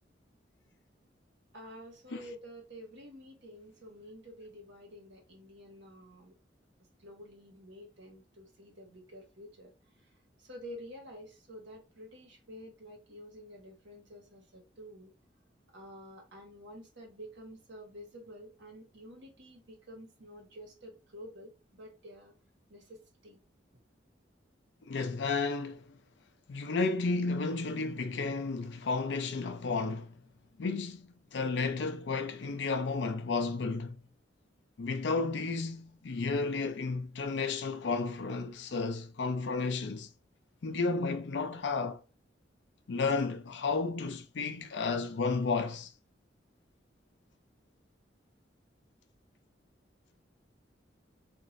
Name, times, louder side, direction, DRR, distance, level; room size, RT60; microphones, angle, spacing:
voice 1, 1.5-6.3 7.0-10.1 10.4-15.1 15.7-22.3 22.7-23.4, equal, 80° right, 1.2 m, -50 dB
voice 2, 24.9-25.9 26.5-30.1 30.6-34.0 34.8-40.1 40.6-42.0 42.9-45.9, left 4 dB, 70° left, 0.5 m, -32 dB
3.0 x 2.5 x 2.5 m
head